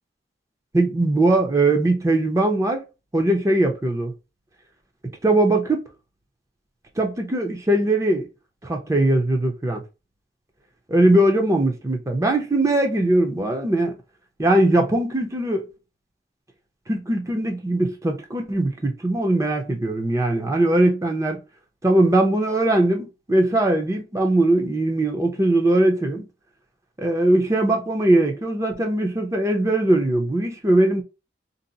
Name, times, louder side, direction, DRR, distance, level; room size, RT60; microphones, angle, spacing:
voice 1, 0.7-2.8 3.1-4.1 5.2-5.8 7.0-8.3 8.6-9.8 10.9-14.0 14.4-15.7 16.9-21.4 21.8-26.3 27.0-31.0, right 1 dB, 20° right, 0.6 m, -20 dB
2.6 x 2.0 x 3.9 m
head